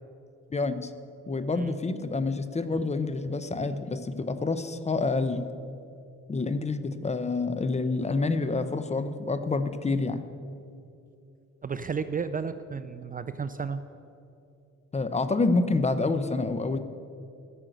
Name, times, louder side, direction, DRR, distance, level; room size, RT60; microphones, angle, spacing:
voice 1, 0.5-0.9 1.3-5.4 6.3-10.2 14.9-16.8, left 3 dB, 20° left, 11 dB, 0.7 m, -28 dB
voice 2, 11.6-13.8, right 5 dB, 30° right, 11 dB, 0.4 m, -33 dB
12.0 x 6.3 x 7.9 m, 2.6 s
cardioid pair, 90°, 30 cm